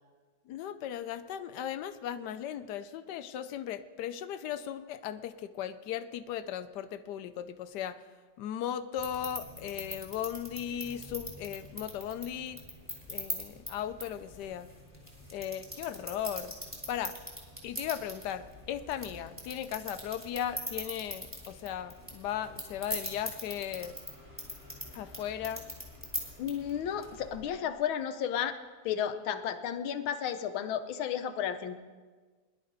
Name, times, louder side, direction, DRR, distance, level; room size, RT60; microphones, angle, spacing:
voice 1, 0.5-8.0 8.4-12.6 13.1-14.7 15.3-16.6 16.9-17.2 17.6-24.0 24.9-25.7, left 10 dB, 70° left, 12 dB, 1.1 m, -37 dB
sound 1, 9.0-27.4, equal, 5° right, 3.2 m, -43 dB
voice 2, 26.4-28.6 28.8-31.8, left 9 dB, 90° left, 9 dB, 1.6 m, -33 dB
20.5 x 11.5 x 4.0 m, 1.4 s
omnidirectional pair, 2.1 m